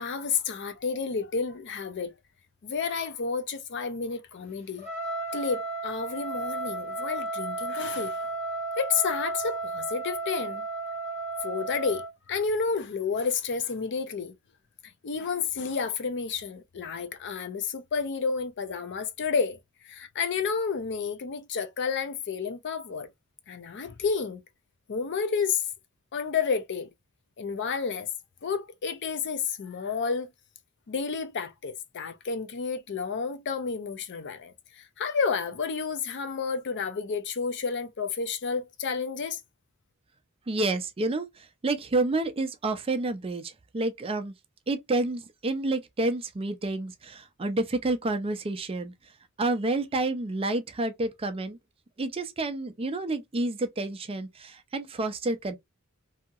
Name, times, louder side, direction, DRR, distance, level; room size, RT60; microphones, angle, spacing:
voice 1, 0.0-2.1 2.6-4.9 5.3-8.2 8.8-10.6 11.4-12.0 12.3-14.3 15.0-19.6 19.8-23.1 23.5-24.4 24.9-25.6 26.1-26.9 27.4-28.1 28.4-30.3 30.9-39.4, left 5 dB, 55° left, 0.5 m, -30 dB
Trumpet, 4.8-12.1, right 2 dB, 30° left, 1.4 m, -33 dB
voice 2, 40.5-44.3 44.7-48.9 49.4-51.6 52.0-55.6, right 2 dB, 25° right, 0.4 m, -29 dB
2.8 x 2.7 x 2.3 m
head